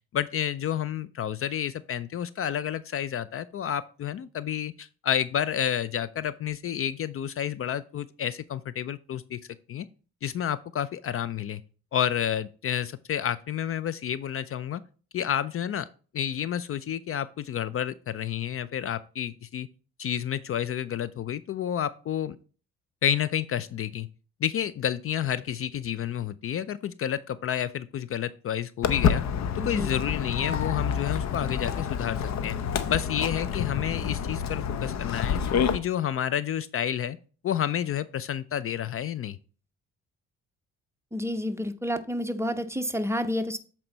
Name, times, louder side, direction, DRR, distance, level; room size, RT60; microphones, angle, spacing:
voice 1, 0.1-9.4 9.7-9.9 10.2-11.6 11.9-14.8 15.1-15.9 16.1-19.7 20.0-22.4 23.0-24.1 24.4-29.2 29.6-32.6 32.9-35.4 35.7-37.2 37.4-39.4, left 9 dB, 50° left, 16 dB, 0.4 m, -30 dB
Walk footsteps, 28.8-35.8, left 7 dB, 65° left, 0.8 m, -28 dB
voice 2, 29.6-30.0 41.1-43.6, equal, 10° right, 8 dB, 0.7 m, -30 dB
7.7 x 4.4 x 4.0 m, 0.37 s
cardioid pair, 90°, 30 cm